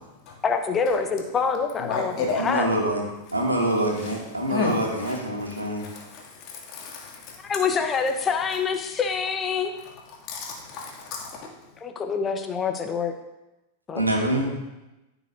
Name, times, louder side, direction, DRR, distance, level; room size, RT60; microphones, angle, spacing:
voice 1, 0.4-2.7 7.4-9.7 11.8-13.1 13.9-14.0, left 5 dB, 20° left, 6 dB, 1.0 m, -26 dB
voice 2, 1.8-2.5 4.5-4.7 5.0-5.1 5.8-7.2 10.3-11.2, left 5 dB, 40° left, -2 dB, 2.5 m, -31 dB
voice 3, 2.4-3.1 3.3-5.9 14.0-14.5, right 1 dB, 80° right, 0 dB, 1.9 m, -25 dB
15.0 x 6.0 x 2.7 m, 1.0 s
figure-of-eight pair, 90°, 0 cm